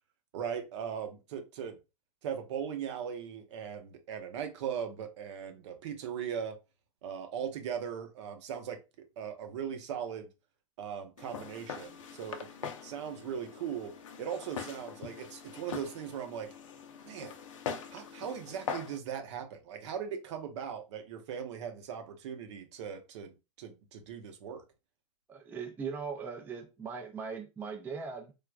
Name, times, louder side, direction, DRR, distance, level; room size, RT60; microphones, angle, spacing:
voice 1, 0.3-1.8 2.2-6.6 7.0-8.8 9.2-10.3 10.8-13.9 14.2-16.5 17.0-17.3 17.9-24.6, right 8 dB, 60° right, 0.7 m, -39 dB
Walk footsteps, 11.2-19.0, left 7 dB, 75° left, 0.6 m, -42 dB
voice 2, 25.3-28.3, right 5 dB, 10° right, 0.4 m, -39 dB
3.4 x 2.3 x 2.3 m
hypercardioid pair, 115°, 17 cm